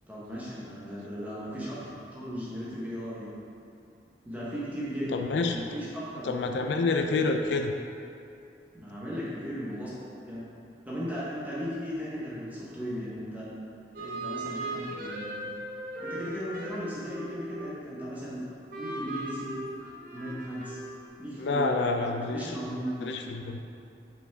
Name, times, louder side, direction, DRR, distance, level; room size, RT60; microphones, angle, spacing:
voice 1, 0.1-3.3 4.2-5.1 5.5-6.4 8.7-9.9 10.3-10.4 10.8-13.5 14.0-15.5 16.0-19.6 20.1-20.8 21.2-23.1, equal, 10° right, -8 dB, 1.0 m, -37 dB
voice 2, 5.1-5.7 6.2-7.7 21.4-22.5 23.0-23.7, left 3 dB, 75° left, 4 dB, 0.4 m, -28 dB
sound 1, 13.9-18.3 18.7-21.1, right 2 dB, 50° right, 0.8 m, -38 dB
6.0 x 5.7 x 3.4 m, 2.5 s
head